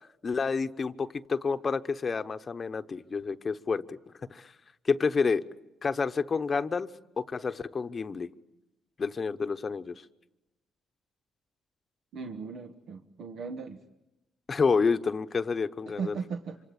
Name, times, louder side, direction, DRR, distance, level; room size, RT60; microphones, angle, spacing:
voice 1, 0.2-4.0 4.3-4.5 4.8-5.4 5.8-6.9 7.2-8.3 9.0-9.9 14.5-16.2, left 5 dB, 35° left, 10 dB, 1.0 m, -29 dB
voice 2, 12.1-13.8 15.8-16.6, right 5 dB, 75° right, 6 dB, 1.4 m, -37 dB
26.5 x 25.5 x 8.7 m, 1.0 s
cardioid pair, 90°, 0 cm